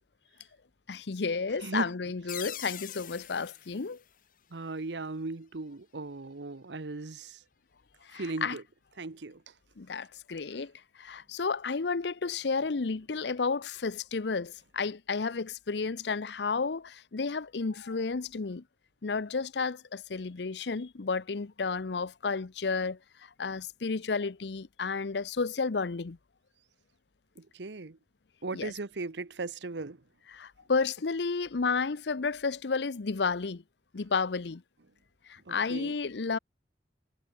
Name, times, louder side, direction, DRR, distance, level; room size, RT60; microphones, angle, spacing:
voice 1, 0.9-4.0 8.1-8.6 9.8-10.7 11.0-18.6 19.0-23.0 23.4-26.2 28.5-28.7 30.3-33.6 33.9-34.6 35.3-36.4, left 4 dB, 75° left, 0.7 m, -32 dB
voice 2, 1.6-1.9 4.5-7.4 8.1-8.6 9.0-9.4 27.4-28.0 28.4-30.0 35.5-35.9, right 3 dB, 90° right, 1.0 m, -37 dB
sound 1, 2.3-4.9, left 11 dB, 50° left, 1.9 m, -44 dB
head